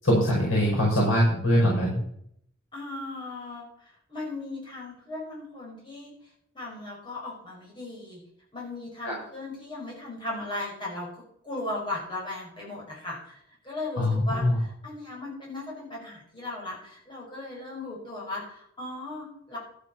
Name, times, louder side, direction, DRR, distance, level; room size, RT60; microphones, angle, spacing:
voice 1, 0.0-2.0 9.0-9.1 14.0-14.6, equal, 75° left, -3 dB, 5.6 m, -22 dB
voice 2, 2.7-6.1 6.5-8.2 8.5-19.6, left 2 dB, 25° left, -4 dB, 5.6 m, -37 dB
13.0 x 7.7 x 6.1 m, 0.70 s
head